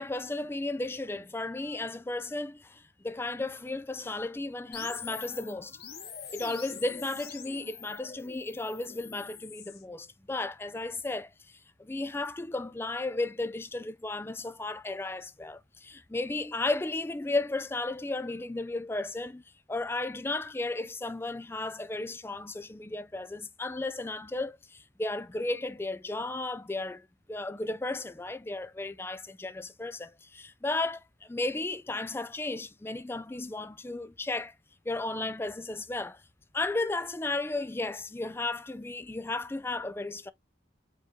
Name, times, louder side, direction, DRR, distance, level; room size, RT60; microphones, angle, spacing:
voice 1, 0.0-5.8 6.3-19.4 19.7-34.5 34.9-36.2 36.5-40.3, left 2 dB, 15° left, 0.4 m, -34 dB
sound 1, 4.7-9.8, left 7 dB, 60° left, 1.2 m, -44 dB
5.2 x 2.7 x 3.6 m
head